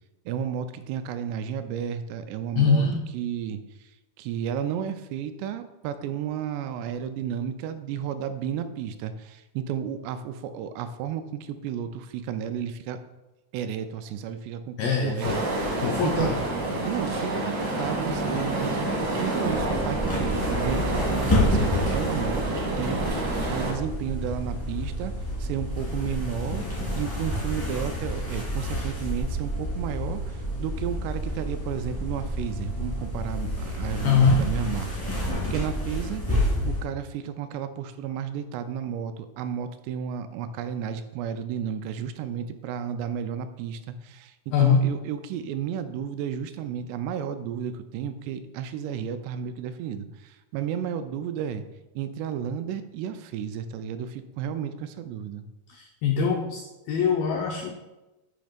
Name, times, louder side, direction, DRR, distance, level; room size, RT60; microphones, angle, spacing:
voice 1, 0.3-2.9 3.1-3.6 4.2-13.0 13.5-16.3 16.8-25.1 25.4-36.2 36.6-44.3 44.6-51.6 52.0-55.5, right 8 dB, 85° right, 10 dB, 2.6 m, -32 dB
voice 2, 2.6-3.0 14.8-15.4 15.8-16.4 34.0-34.5 44.5-44.9 55.7-57.8, left 5 dB, 85° left, 2 dB, 2.0 m, -23 dB
sound 1, 15.2-23.7, right 2 dB, 65° right, 1.2 m, -28 dB
sound 2, 19.4-36.8, equal, 20° left, 0.5 m, -29 dB
7.8 x 3.1 x 5.1 m, 1.0 s
omnidirectional pair, 4.8 m